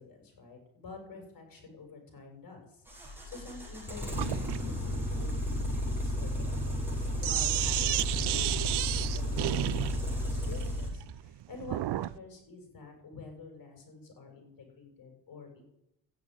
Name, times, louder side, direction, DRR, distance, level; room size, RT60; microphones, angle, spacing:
voice 1, 0.0-15.7, left 4 dB, 55° left, 3 dB, 6.8 m, -49 dB
sound 1, 2.9-10.9, left 1 dB, 5° right, 7.1 m, -33 dB
Sink (filling or washing), 4.2-12.2, right 15 dB, 75° right, 0.7 m, -33 dB
13.5 x 9.4 x 10.0 m, 0.84 s
cardioid pair, 90°, 40 cm